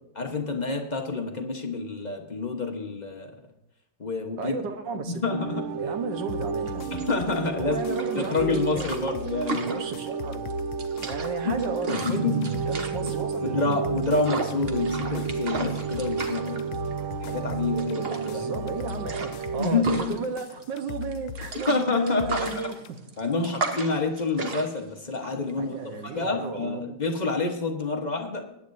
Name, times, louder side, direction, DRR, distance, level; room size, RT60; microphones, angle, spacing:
voice 1, 0.2-3.4 4.0-4.6 4.9-5.7 6.9-9.7 11.4-11.6 11.9-12.5 13.0-13.1 13.4-16.8 17.2-18.4 19.6-20.2 21.7-22.7 23.2-28.5, left 3 dB, 25° left, 2 dB, 1.0 m, -28 dB
voice 2, 4.4-5.1 5.8-6.9 7.6-8.9 9.6-10.5 11.0-13.8 18.3-23.0 25.6-26.8, right 4 dB, 65° right, 7 dB, 1.7 m, -33 dB
sound 1, 5.3-19.7, right 7 dB, 85° right, 1.5 m, -32 dB
sound 2, 6.3-22.9, left 8 dB, 75° left, 1.2 m, -40 dB
sound 3, 6.6-26.3, right 3 dB, 40° right, 1.0 m, -36 dB
21.5 x 9.7 x 2.7 m, 0.85 s
omnidirectional pair, 2.2 m